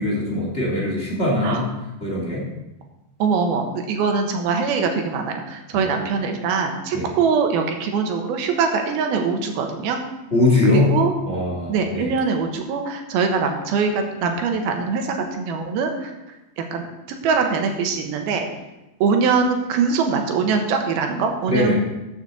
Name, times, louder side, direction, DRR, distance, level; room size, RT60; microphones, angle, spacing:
voice 1, 0.0-1.7 2.0-2.5 5.7-5.8 6.9-7.1 10.3-11.0 11.2-12.1 21.5-21.7, left 2 dB, 25° left, -4 dB, 1.6 m, -21 dB
voice 2, 3.2-10.0 10.7-11.1 11.7-16.1 16.6-16.9 17.2-18.5 19.0-21.8, right 5 dB, 85° right, 4 dB, 3.0 m, -22 dB
13.0 x 7.0 x 4.1 m, 1.0 s
omnidirectional pair, 4.3 m